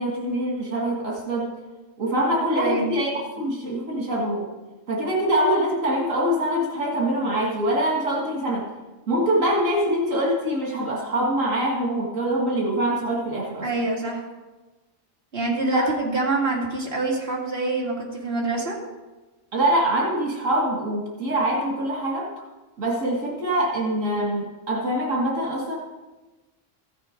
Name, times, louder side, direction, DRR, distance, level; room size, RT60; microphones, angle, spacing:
voice 1, 0.0-1.5 2.0-4.5 4.9-8.7 9.1-13.7 15.7-15.9 19.5-22.4 22.8-25.8, right 1 dB, 85° right, -2 dB, 2.2 m, -24 dB
voice 2, 2.3-3.0 13.6-14.2 15.3-18.8, right 3 dB, 50° right, -3 dB, 2.5 m, -26 dB
14.5 x 6.6 x 5.1 m, 1.2 s
omnidirectional pair, 1.3 m